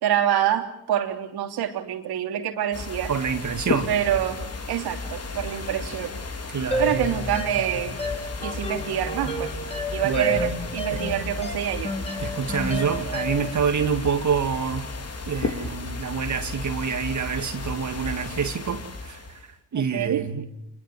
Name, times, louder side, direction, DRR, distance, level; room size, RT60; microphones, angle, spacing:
voice 1, 0.0-3.1 3.9-4.4 4.7-6.1 6.8-8.0 8.4-9.5 9.9-11.9 19.7-20.2, right 10 dB, 65° right, 3.2 m, -26 dB
sound 1, 2.7-19.5, left 3 dB, 35° left, 3.4 m, -34 dB
voice 2, 3.1-4.0 5.5-5.6 6.5-7.0 10.0-10.5 10.9-11.1 12.2-14.9 15.3-20.5, right 6 dB, 45° right, 2.4 m, -27 dB
sound 2, 6.7-13.6, left 1 dB, 15° left, 3.4 m, -31 dB
27.0 x 22.0 x 7.6 m
hypercardioid pair, 55°, 40 cm